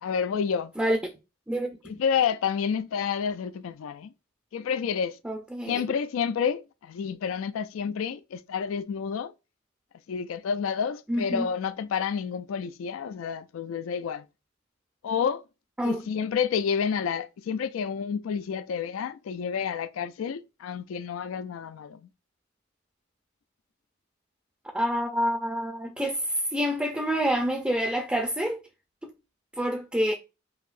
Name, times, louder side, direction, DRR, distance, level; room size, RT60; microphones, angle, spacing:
voice 1, 0.0-0.7 1.8-4.1 4.5-5.2 5.7-9.3 10.1-14.3 15.0-15.4 15.8-22.1, left 7 dB, 85° left, 0.3 m, -29 dB
voice 2, 1.5-1.8 5.2-5.8 11.1-11.5 15.8-16.0 24.7-26.2 26.5-28.6 29.0-29.1 29.6-30.1, equal, 5° right, 0.4 m, -27 dB
5.7 x 2.7 x 2.4 m
head